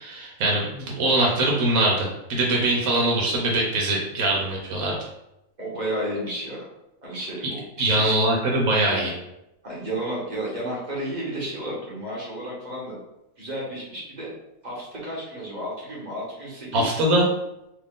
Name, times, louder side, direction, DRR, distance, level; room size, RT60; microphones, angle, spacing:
voice 1, 0.0-5.0 7.8-9.1 16.7-17.2, right 1 dB, 85° right, -2 dB, 1.2 m, -22 dB
voice 2, 5.6-6.6 7.0-8.1 8.9-9.1 9.6-13.0 13.4-14.3 14.6-17.0, right 1 dB, 35° right, -6 dB, 1.0 m, -32 dB
3.1 x 2.5 x 3.6 m, 0.88 s
omnidirectional pair, 1.4 m